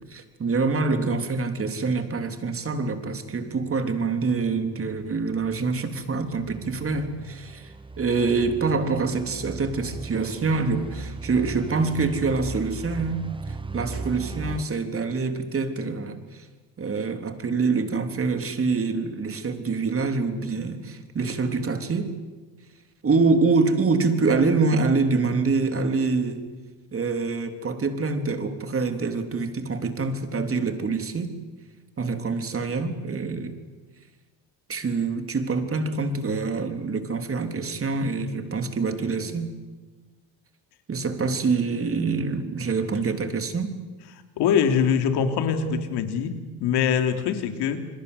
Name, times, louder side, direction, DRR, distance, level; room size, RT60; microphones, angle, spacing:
voice 1, 0.0-16.5 16.8-22.1 23.0-26.5 26.9-31.3 32.0-33.6 34.7-39.6 40.9-43.7, right 4 dB, 35° right, 7 dB, 3.6 m, -25 dB
sound 1, 5.1-14.6, right 4 dB, 10° right, 1.0 m, -38 dB
voice 2, 44.4-47.9, left 7 dB, 75° left, 6 dB, 3.3 m, -23 dB
28.5 x 21.5 x 8.1 m, 1.3 s
supercardioid pair, 90°, 40 cm